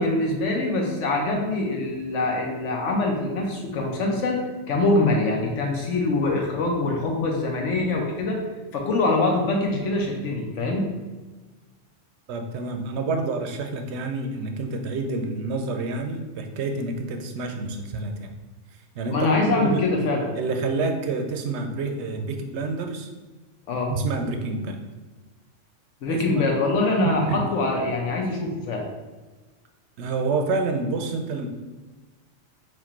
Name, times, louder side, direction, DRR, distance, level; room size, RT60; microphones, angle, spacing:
voice 1, 0.0-4.4 4.7-8.4 8.7-10.9 19.1-20.3 23.7-23.9 26.0-28.9, left 2 dB, 75° left, 1 dB, 1.1 m, -24 dB
voice 2, 12.3-18.3 18.9-19.9 20.3-23.1 23.9-24.8 26.1-26.4 27.0-27.5 30.0-31.5, right 3 dB, 65° right, 5 dB, 0.8 m, -28 dB
4.4 x 2.5 x 4.3 m, 1.2 s
omnidirectional pair, 1.3 m